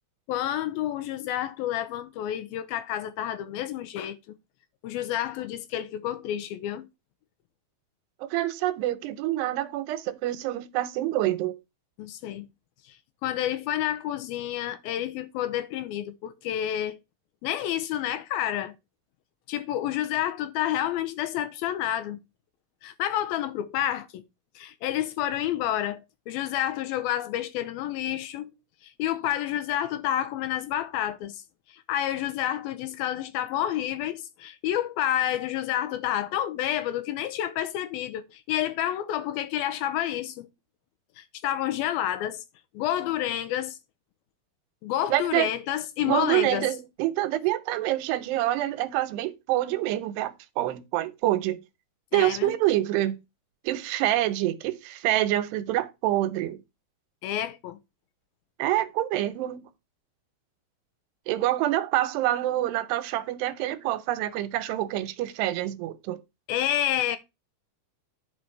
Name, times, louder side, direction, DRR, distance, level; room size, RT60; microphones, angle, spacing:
voice 1, 0.3-4.2 4.8-6.9 12.0-12.5 13.2-17.0 17.4-18.7 19.5-22.2 22.8-24.2 24.6-28.5 28.8-31.4 31.7-40.5 41.2-42.4 42.7-43.8 44.8-46.7 52.1-52.5 57.2-57.8 66.5-67.2, left 12 dB, 75° left, 2.4 m, -29 dB
voice 2, 8.2-11.6 45.1-45.5 46.0-51.6 52.1-53.2 53.6-56.6 58.6-59.6 61.3-66.2, right 14 dB, 85° right, 2.9 m, -26 dB
10.5 x 5.3 x 4.6 m
omnidirectional pair, 4.7 m